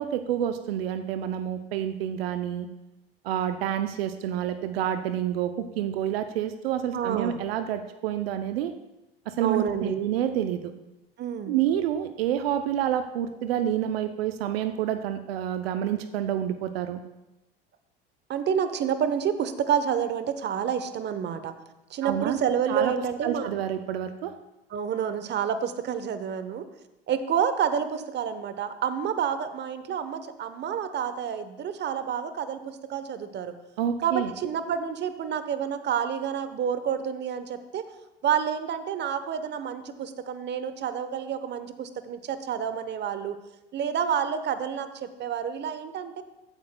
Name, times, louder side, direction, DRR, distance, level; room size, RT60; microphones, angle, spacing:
voice 1, 0.0-2.7 3.2-8.7 9.3-10.7 11.5-17.0 22.0-22.4 22.7-22.9 23.2-24.3 33.8-34.3, right 10 dB, 80° right, 10 dB, 0.6 m, -28 dB
voice 2, 6.9-7.4 9.4-10.0 11.2-11.5 18.3-21.5 21.9-23.5 24.7-26.7 27.1-33.5 34.0-37.8 38.2-43.4 43.7-46.2, right 8 dB, 35° right, 11 dB, 0.9 m, -29 dB
14.5 x 8.8 x 2.2 m, 0.98 s
hypercardioid pair, 85°, 30 cm